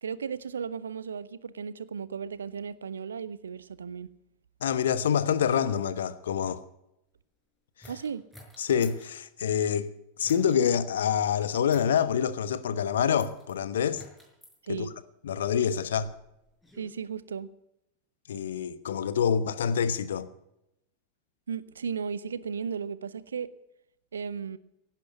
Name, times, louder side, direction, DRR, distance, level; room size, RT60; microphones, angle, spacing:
voice 1, 0.0-4.1 7.9-8.2 14.6-14.9 16.8-17.5 21.5-23.5 24.1-24.6, right 6 dB, 70° right, 0.9 m, -35 dB
voice 2, 4.6-6.6 7.8-7.9 8.6-9.9 10.2-14.0 14.7-14.9 15.2-16.1 18.3-20.3, left 8 dB, 60° left, 1.1 m, -26 dB
sound 1, 7.8-9.1 10.2-10.6 11.7-12.1 13.2-13.5 13.9-14.6 15.5-16.9, equal, 5° left, 5.6 m, -52 dB
17.0 x 10.5 x 7.9 m
figure-of-eight pair, 90°, 0 cm